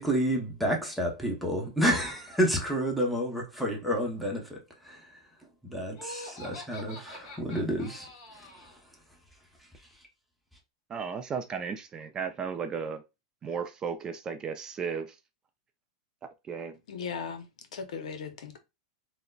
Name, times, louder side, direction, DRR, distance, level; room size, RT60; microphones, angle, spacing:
voice 1, 0.0-4.6 4.8-5.0 5.6-8.1, equal, ahead, 0.8 m, -29 dB
Laughter, 5.9-8.8, left 1 dB, 50° left, 1.4 m, -45 dB
voice 2, 10.9-13.0 13.4-15.1 16.5-16.7, right 6 dB, 20° right, 0.3 m, -34 dB
voice 3, 16.9-18.6, left 6 dB, 85° left, 0.7 m, -38 dB
3.7 x 2.1 x 2.2 m
supercardioid pair, 140°, 4 cm